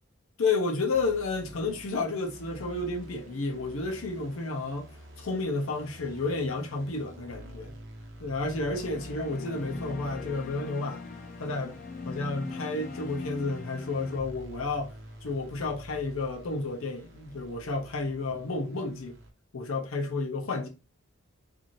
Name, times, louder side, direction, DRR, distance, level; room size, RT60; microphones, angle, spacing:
voice 1, 0.4-4.9 5.2-7.7 8.2-11.0 11.4-11.8 12.0-14.9 15.2-19.1 19.5-20.7, left 3 dB, 90° left, 0.7 m, -31 dB
sound 1, 0.9-19.3, right 1 dB, 60° right, 0.7 m, -48 dB
sound 2, 8.7-14.2, left 4 dB, 40° left, 0.4 m, -40 dB
2.6 x 2.6 x 3.0 m
head